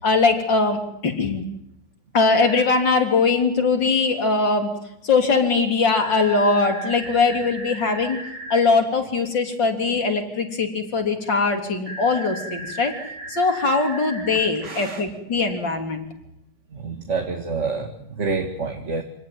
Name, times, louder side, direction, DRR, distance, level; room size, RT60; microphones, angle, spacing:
voice 1, 0.0-1.4 2.1-4.7 5.0-8.2 8.5-12.9 13.3-16.1, left 4 dB, 75° left, 4 dB, 4.1 m, -21 dB
sound 1, 2.3-2.6 5.9-8.6 11.9-14.5, right 1 dB, 60° right, 6.2 m, -36 dB
voice 2, 14.6-15.0 16.7-19.0, right 4 dB, 40° right, 5 dB, 2.3 m, -28 dB
27.5 x 18.5 x 9.3 m, 0.80 s
omnidirectional pair, 2.0 m